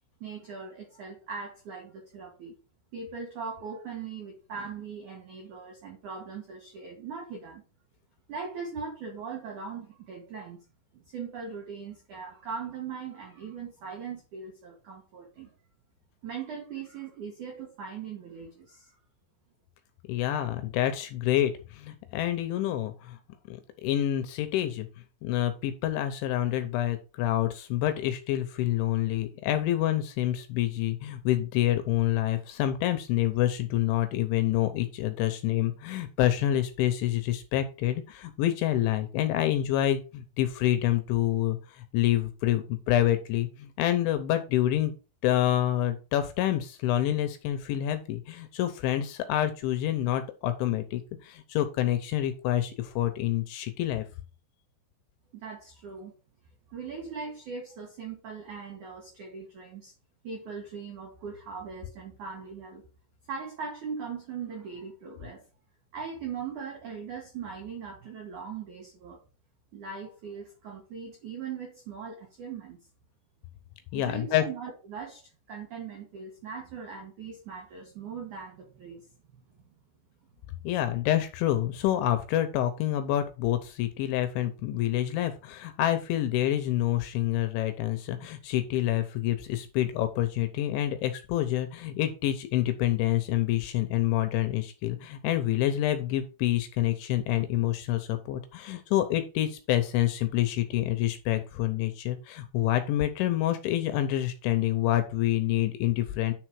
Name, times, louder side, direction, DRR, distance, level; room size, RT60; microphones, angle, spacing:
voice 1, 0.2-2.6 2.9-7.6 8.3-10.6 10.9-15.5 16.2-18.9 55.3-56.1 56.7-59.9 60.2-62.8 63.3-65.4 65.9-69.2 69.7-72.8 73.9-79.6 80.6-80.7, right 5 dB, 85° right, 1.7 m, -40 dB
voice 2, 20.1-23.2 23.5-24.9 25.2-44.9 45.2-54.1 73.9-74.4 80.6-106.3, left 13 dB, 80° left, 2.8 m, -27 dB
10.0 x 3.9 x 4.7 m
omnidirectional pair, 5.8 m